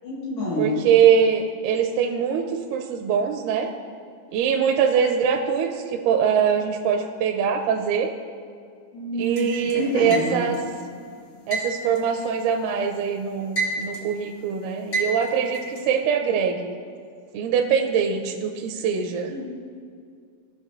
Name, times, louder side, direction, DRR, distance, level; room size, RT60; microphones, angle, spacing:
voice 1, 0.0-0.8 8.9-10.4 19.3-19.4, equal, 75° left, -7 dB, 3.7 m, -27 dB
voice 2, 0.6-3.7 4.3-8.1 9.2-10.6 11.5-16.7 17.3-19.3, right 7 dB, 80° right, 3 dB, 2.0 m, -23 dB
sound 1, 9.4-10.7 11.5-12.9 13.2-14.2 14.9-15.8, right 3 dB, 55° left, 1.4 m, -29 dB
17.0 x 5.8 x 2.6 m, 2.2 s
omnidirectional pair, 3.9 m